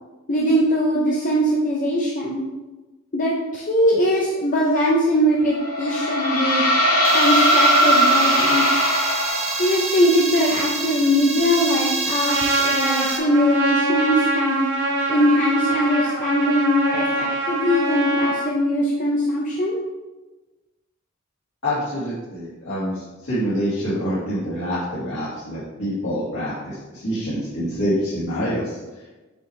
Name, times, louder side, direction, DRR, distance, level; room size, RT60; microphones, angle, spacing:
voice 1, 0.3-2.4 3.1-6.7 7.1-8.9 9.6-14.7 15.1-19.8, equal, 35° left, -3 dB, 0.6 m, -21 dB
sound 1, 5.5-9.8, equal, 75° left, 1.7 m, -19 dB
sound 2, 7.0-13.2, right 3 dB, 30° right, 0.7 m, -27 dB
Trumpet, 12.2-18.5, right 2 dB, 55° right, 1.1 m, -24 dB
voice 2, 21.6-28.8, equal, 60° left, -13 dB, 2.0 m, -26 dB
6.3 x 4.9 x 3.2 m, 1.2 s
head